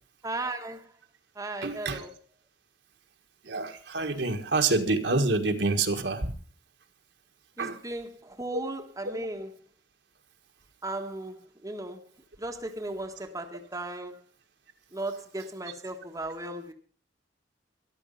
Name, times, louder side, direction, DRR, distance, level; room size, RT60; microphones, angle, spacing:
voice 1, 0.2-0.8 1.4-2.1 7.6-9.5 10.8-12.0 12.4-14.2 14.9-16.7, right 2 dB, 20° right, 1.2 m, -36 dB
voice 2, 1.6-2.0 3.4-6.3 7.6-7.8, right 3 dB, 70° right, 1.7 m, -27 dB
13.5 x 12.0 x 5.5 m
head